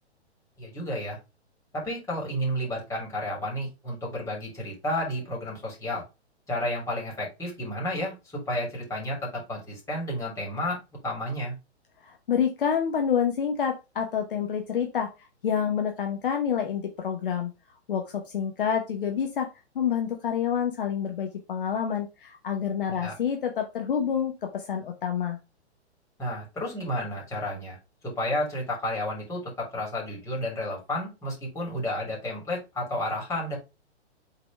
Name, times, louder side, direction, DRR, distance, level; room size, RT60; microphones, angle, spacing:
voice 1, 0.6-1.2 1.7-6.0 6.5-11.5 23.0-23.1 26.2-27.8 28.0-33.6, left 1 dB, 10° left, -3 dB, 3.3 m, -31 dB
voice 2, 12.0-15.1 15.4-17.5 17.9-19.5 19.7-25.4, left 8 dB, 50° left, 3 dB, 1.1 m, -28 dB
5.5 x 4.1 x 4.7 m, 0.27 s
figure-of-eight pair, 120°, 34 cm